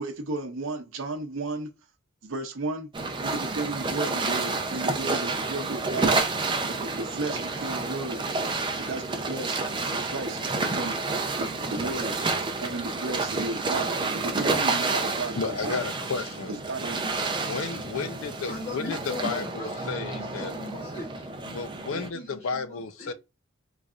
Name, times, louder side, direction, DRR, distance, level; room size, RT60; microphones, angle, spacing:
voice 1, 0.0-1.7 2.2-2.9 3.2-6.2 6.7-8.2 8.7-11.0 11.4-12.2 12.6-15.8 16.5-17.0 17.3-17.6, right 3 dB, 65° right, 0.7 m, -34 dB
sound 1, 2.9-22.1, right 3 dB, 20° right, 0.5 m, -29 dB
voice 2, 11.5-11.8 15.4-16.6 17.4-20.5 21.4-23.1, left 4 dB, 70° left, 0.4 m, -33 dB
voice 3, 18.5-21.3 21.9-23.1, left 3 dB, 35° left, 0.9 m, -39 dB
3.7 x 3.2 x 2.4 m
head